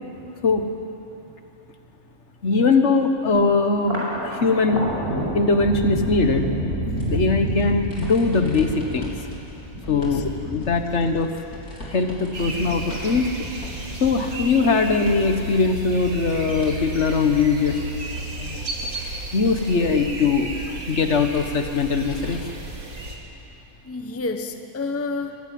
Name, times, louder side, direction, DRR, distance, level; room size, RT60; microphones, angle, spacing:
voice 1, 2.4-4.9 5.3-6.5 7.1-9.1 9.9-11.3 11.9-13.5 14.0-17.8 18.4-18.7 19.3-20.5 20.9-22.4, left 4 dB, 55° left, 6 dB, 1.5 m, -21 dB
Thunder, 3.7-16.4 16.8-17.6 17.9-18.8, right 1 dB, 45° right, 5.5 m, -31 dB
sound 1, 6.9-15.4 15.7-22.7 23.1-23.2 24.4-24.5, left 1 dB, 85° left, 4.2 m, -41 dB
voice 2, 9.8-10.2 18.6-18.7 23.8-25.4, left 3 dB, 10° left, 6 dB, 0.8 m, -30 dB
sound 2, 12.3-23.2, right 2 dB, 75° right, 2.5 m, -33 dB
21.5 x 15.5 x 9.3 m, 2.8 s
omnidirectional pair, 1.5 m